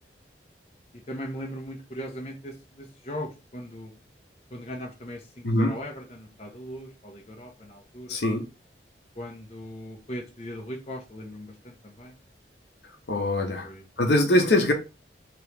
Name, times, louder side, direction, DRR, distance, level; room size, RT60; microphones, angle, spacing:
voice 1, 1.1-3.9 4.5-8.2 9.2-12.1 13.6-13.9, equal, 35° left, 0.6 m, -39 dB
voice 2, 8.1-8.4 13.1-13.7 14.0-14.7, left 1 dB, 70° left, 0.7 m, -22 dB
3.0 x 2.9 x 3.3 m
head